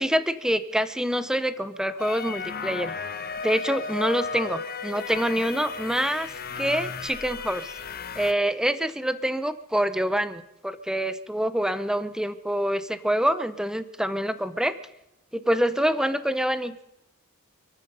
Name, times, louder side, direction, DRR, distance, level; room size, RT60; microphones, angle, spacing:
voice 1, 0.0-2.9 3.4-7.7 8.2-14.8 15.3-16.8, equal, 5° right, 12 dB, 0.7 m, -26 dB
sound 1, 2.0-8.3, left 5 dB, 45° left, 0.9 m, -34 dB
27.5 x 9.2 x 5.5 m, 0.89 s
head